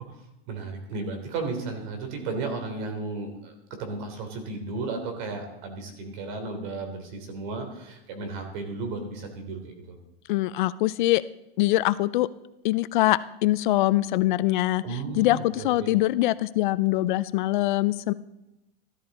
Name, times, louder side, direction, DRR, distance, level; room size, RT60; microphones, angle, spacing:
voice 1, 0.5-10.0 14.8-15.9, right 3 dB, 50° right, 5 dB, 3.5 m, -34 dB
voice 2, 10.3-11.2 11.6-12.3 12.6-18.1, left 16 dB, 55° left, 16 dB, 0.5 m, -23 dB
14.5 x 13.5 x 4.2 m, 0.93 s
supercardioid pair, 155°, 30 cm